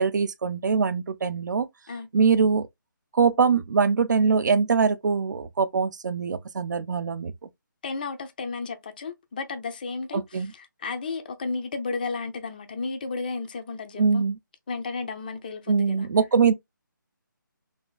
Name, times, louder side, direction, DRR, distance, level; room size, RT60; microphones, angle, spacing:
voice 1, 0.0-1.7 2.1-2.7 3.1-7.3 10.1-10.5 14.0-14.4 15.7-16.5, right 5 dB, 60° right, 0.4 m, -22 dB
voice 2, 7.8-14.2 14.7-16.1, left 4 dB, 25° left, 0.4 m, -33 dB
3.2 x 2.4 x 2.2 m
hypercardioid pair, 165°, 11 cm